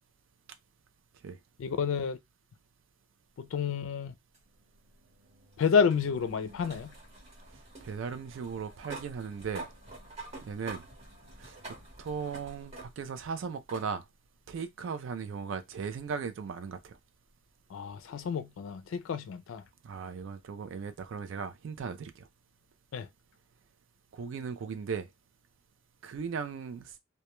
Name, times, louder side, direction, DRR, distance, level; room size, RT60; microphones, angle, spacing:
voice 1, 1.6-2.2 3.4-4.1 5.6-6.9 17.7-19.6 22.9-23.1, left 6 dB, 80° left, 0.4 m, -29 dB
sound 1, 4.3-13.2 13.7-13.9 15.2-15.3 18.2-18.3, right 2 dB, 30° right, 0.9 m, -48 dB
voice 2, 7.8-9.7 10.4-10.8 11.4-14.0 14.5-17.0 19.8-22.3 24.1-25.1 26.0-26.9, right 6 dB, 75° right, 0.3 m, -37 dB
2.2 x 2.1 x 2.9 m
head